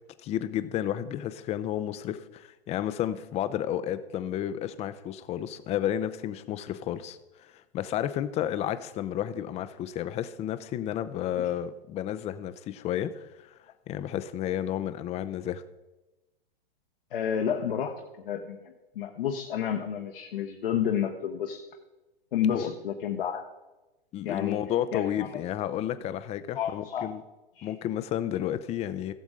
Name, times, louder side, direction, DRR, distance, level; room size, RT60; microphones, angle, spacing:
voice 1, 0.2-15.6 22.5-22.7 24.1-27.2 27.6-29.1, left 11 dB, 20° left, 13 dB, 0.5 m, -32 dB
voice 2, 17.1-21.6 22.3-23.5 24.2-24.6 24.9-25.4 26.5-27.1 27.6-27.7, left 8 dB, 65° left, 3 dB, 1.1 m, -30 dB
16.0 x 7.1 x 3.8 m, 1.1 s
figure-of-eight pair, 105°, 30 cm